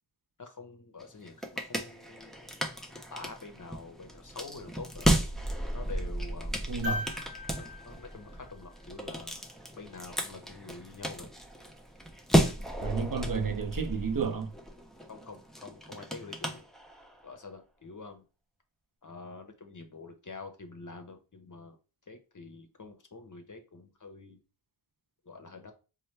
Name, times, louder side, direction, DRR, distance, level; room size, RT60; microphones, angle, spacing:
voice 1, 0.4-2.4 2.8-5.1 5.7-6.6 7.6-9.4 9.7-11.3 15.1-16.6 17.2-18.2 19.0-21.8 22.1-24.4 25.2-25.7, left 3 dB, 40° left, 0.7 m, -46 dB
sound 1, 1.0-17.2, right 1 dB, ahead, 0.5 m, -34 dB
voice 2, 6.7-7.1 12.8-14.5, right 5 dB, 45° right, 0.6 m, -31 dB
sound 2, 6.8-9.2 11.2-11.3, left 3 dB, 80° right, 1.0 m, -40 dB
4.3 x 2.2 x 3.2 m
wide cardioid pair, 60°, 46 cm